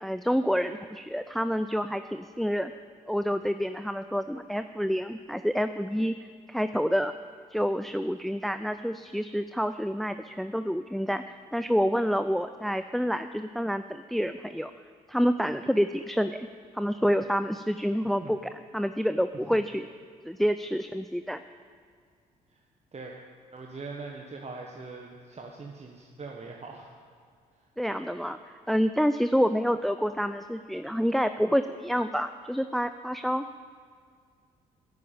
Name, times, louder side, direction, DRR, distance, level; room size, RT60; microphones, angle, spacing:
voice 1, 0.0-2.7 3.1-6.1 6.5-7.1 7.5-14.7 15.1-16.5 16.7-18.4 18.7-19.9 20.2-21.4 27.8-28.4 28.7-33.5, equal, ahead, 10 dB, 0.4 m, -28 dB
voice 2, 23.5-26.9 27.6-27.7, right 3 dB, 35° right, 0 dB, 1.4 m, -42 dB
10.5 x 8.5 x 8.9 m, 2.1 s
hypercardioid pair, 45°, 20 cm